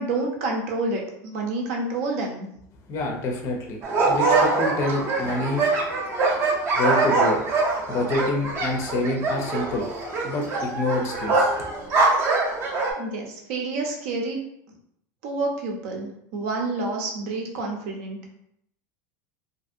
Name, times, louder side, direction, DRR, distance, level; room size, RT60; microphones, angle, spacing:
voice 1, 0.0-2.5 13.0-14.4 15.2-18.2, right 2 dB, 65° right, 1 dB, 0.7 m, -28 dB
voice 2, 2.9-5.6 6.7-7.4 7.9-9.9 10.2-11.6, left 2 dB, 35° left, 1 dB, 0.5 m, -27 dB
sound 1, 3.8-12.9, right 3 dB, 30° right, 0.6 m, -23 dB
2.7 x 2.6 x 2.6 m, 0.73 s
supercardioid pair, 155°, 8 cm